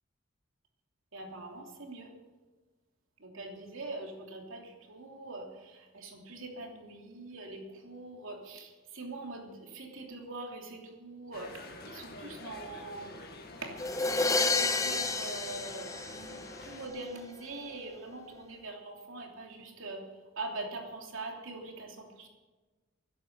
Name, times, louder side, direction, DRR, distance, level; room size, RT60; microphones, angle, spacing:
voice 1, 1.1-2.1 3.2-13.0 13.6-13.7 14.0-20.0 20.4-22.3, right 2 dB, 75° right, 1 dB, 3.1 m, -43 dB
sound 1, 11.3-16.9, left 2 dB, 50° left, 1.9 m, -48 dB
sound 2, 13.8-16.7, left 3 dB, 15° left, 0.9 m, -30 dB
13.5 x 10.5 x 8.2 m, 1.3 s
head